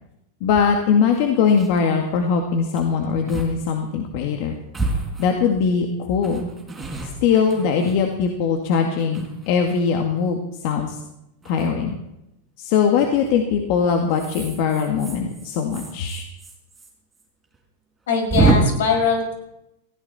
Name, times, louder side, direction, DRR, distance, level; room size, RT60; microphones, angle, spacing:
voice 1, 0.4-4.5 5.2-6.5 7.0-10.4 10.6-11.0 11.5-12.0 12.6-16.3, left 6 dB, 55° left, 3 dB, 2.0 m, -21 dB
sound 1, 0.5-0.7 1.1-1.2 1.4-1.8 2.7-2.9 3.3-3.5 3.8-3.9 4.7-5.7 6.2-8.5 9.0-9.8 11.4-11.7 13.0-13.3 14.1-16.9 17.2-17.3 17.5-17.6 18.3-18.6, right 3 dB, 10° right, 4.6 m, -27 dB
voice 2, 18.1-19.3, left 5 dB, 80° left, 2 dB, 6.0 m, -21 dB
18.0 x 15.5 x 4.3 m, 0.87 s
supercardioid pair, 135°, 0 cm